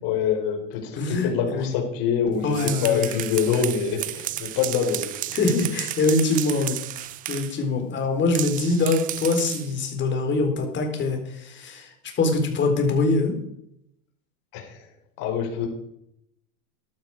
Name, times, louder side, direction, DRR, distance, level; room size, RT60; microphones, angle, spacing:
voice 1, 0.0-5.2 14.5-15.7, left 7 dB, 50° left, 2 dB, 5.0 m, -25 dB
voice 2, 1.0-1.7 2.4-3.2 5.3-6.8 7.3-13.4, left 3 dB, 25° left, 4 dB, 4.0 m, -24 dB
sound 1, 2.4-7.6 8.3-9.7, right 14 dB, 20° right, 0.4 m, -33 dB
14.5 x 12.0 x 4.9 m, 0.77 s
hypercardioid pair, 125°, 45 cm